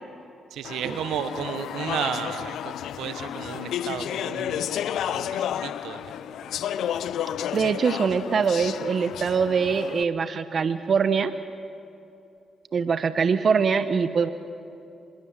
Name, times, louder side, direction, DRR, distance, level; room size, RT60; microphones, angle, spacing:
voice 1, 0.5-4.7 5.0-6.1, right 9 dB, 80° right, 11 dB, 1.1 m, -33 dB
Speech / Chatter, 0.6-10.0, left 10 dB, 80° left, 0.6 m, -31 dB
voice 2, 7.5-11.3 12.7-14.3, right 6 dB, 55° right, 12 dB, 1.0 m, -23 dB
25.0 x 21.5 x 7.4 m, 2.7 s
supercardioid pair, 55°, 0 cm